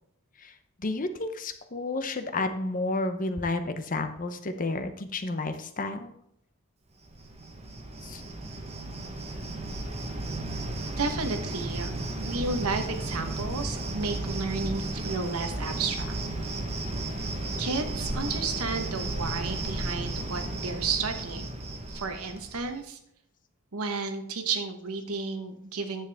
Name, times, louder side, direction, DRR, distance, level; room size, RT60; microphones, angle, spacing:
voice 1, 0.8-6.1 8.0-8.2, left 2 dB, 40° left, 9 dB, 0.7 m, -31 dB
Cricket, 7.1-22.8, right 2 dB, 30° right, 1.1 m, -34 dB
voice 2, 11.0-11.9 12.2-16.1 17.6-21.5 21.9-23.0 23.7-26.1, right 4 dB, 85° right, 6 dB, 1.1 m, -32 dB
10.0 x 7.3 x 3.5 m, 0.74 s
head